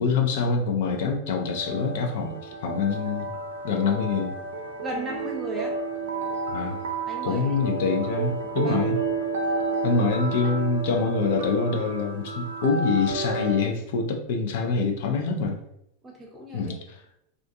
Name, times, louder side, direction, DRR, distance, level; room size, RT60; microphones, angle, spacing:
voice 1, 0.0-3.4 3.6-4.4 6.5-6.8 7.2-9.0 9.8-15.6 16.5-17.0, left 4 dB, 65° left, 2 dB, 0.5 m, -25 dB
sound 1, 1.3-13.7, right 3 dB, 85° right, 0.5 m, -31 dB
voice 2, 4.8-5.7 7.1-7.5 8.6-8.8 9.9-10.0 10.4-10.5 16.0-16.7, right 1 dB, 15° right, -1 dB, 0.8 m, -35 dB
2.5 x 2.3 x 2.6 m, 0.76 s
hypercardioid pair, 115°, 0 cm